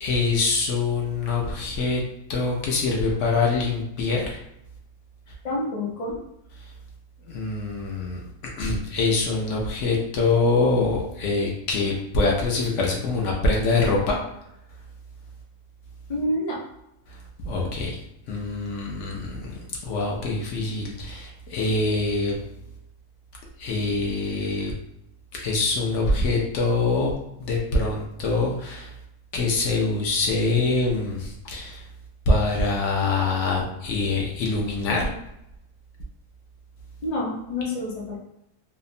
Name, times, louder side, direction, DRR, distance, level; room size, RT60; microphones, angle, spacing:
voice 1, 0.0-2.0 2.3-4.4 7.3-8.2 8.6-14.2 17.4-18.0 18.3-22.4 23.6-24.7 25.4-27.1 27.4-28.9 29.3-31.8 32.3-35.1, left 3 dB, 70° left, -1 dB, 0.9 m, -24 dB
voice 2, 5.4-6.2 16.1-16.6 37.0-38.2, left 1 dB, 40° left, -4 dB, 0.6 m, -28 dB
2.7 x 2.1 x 2.5 m, 0.80 s
omnidirectional pair, 1.4 m